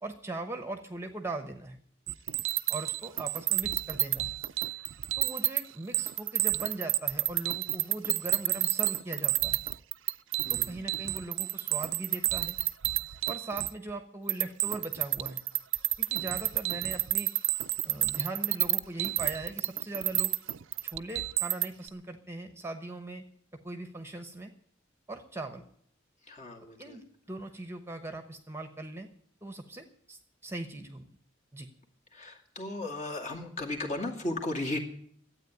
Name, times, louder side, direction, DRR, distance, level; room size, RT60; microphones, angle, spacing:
voice 1, 0.0-1.8 2.7-4.3 5.2-9.6 10.5-12.6 13.3-15.4 16.0-17.3 17.8-20.3 20.8-23.2 23.6-24.5 25.1-25.6 26.8-29.1 29.4-31.1 31.5-31.7, right 2 dB, 15° right, 7 dB, 1.0 m, -40 dB
sound 1, 2.1-5.6 5.9-13.9 14.3-21.9, right 17 dB, 70° right, 0.5 m, -30 dB
voice 2, 10.4-10.8 26.3-27.0 32.1-34.8, left 2 dB, 35° left, 1 dB, 2.4 m, -35 dB
12.5 x 8.8 x 9.4 m, 0.64 s
head